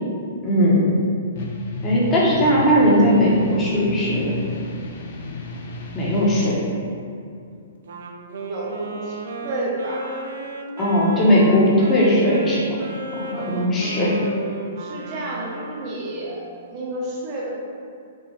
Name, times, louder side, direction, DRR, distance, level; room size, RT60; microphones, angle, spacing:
voice 1, 0.4-0.9 1.8-4.4 5.9-6.6 10.8-12.6 13.1-14.1, equal, 20° left, -6 dB, 1.0 m, -18 dB
sound 1, 1.3-6.4, left 2 dB, 60° left, 0.6 m, -31 dB
Wind instrument woodwind instrument, 7.8-16.1, right 3 dB, 70° right, 0.5 m, -34 dB
voice 2, 8.3-10.3 13.8-14.0 14.8-16.4 16.7-17.5, right 1 dB, 35° right, -4 dB, 1.0 m, -31 dB
5.3 x 2.6 x 3.3 m, 2.4 s
hypercardioid pair, 150°, 0 cm